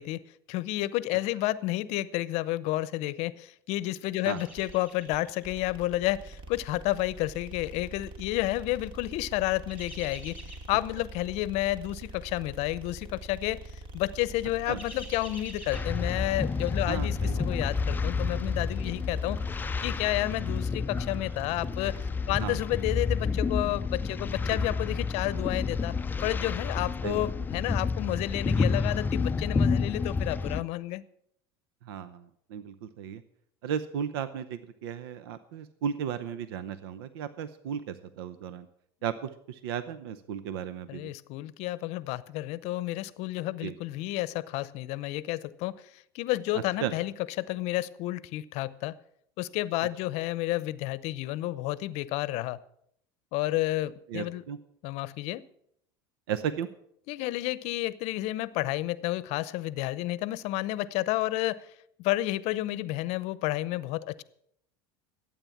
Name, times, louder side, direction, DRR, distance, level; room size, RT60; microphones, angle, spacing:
voice 1, 0.0-10.4 10.7-19.4 19.8-21.9 22.3-25.9 26.2-31.0 40.9-49.0 49.4-52.6 53.3-54.4 54.8-55.4 57.1-61.7 62.0-64.2, left 17 dB, 60° left, 19 dB, 0.7 m, -31 dB
sound 1, 4.1-5.5 5.8-6.0 6.7-8.4 9.4-10.9 11.3-11.6 11.8-12.0 12.9-13.3 13.6-13.8 14.3-16.6 16.9-17.0, equal, 10° right, 3.6 m, -49 dB
sound 2, 4.5-22.7, right 1 dB, 45° right, 2.5 m, -45 dB
sound 3, 15.7-30.6, left 4 dB, 15° left, 0.5 m, -30 dB
voice 2, 16.9-17.5 22.4-22.6 27.0-27.3 31.8-33.2 33.6-38.7 39.0-41.1 43.6-43.7 46.8-46.9 54.1-54.6 56.3-56.7, right 8 dB, 80° right, 13 dB, 0.7 m, -35 dB
12.5 x 8.9 x 7.2 m, 0.71 s
supercardioid pair, 100°, 12 cm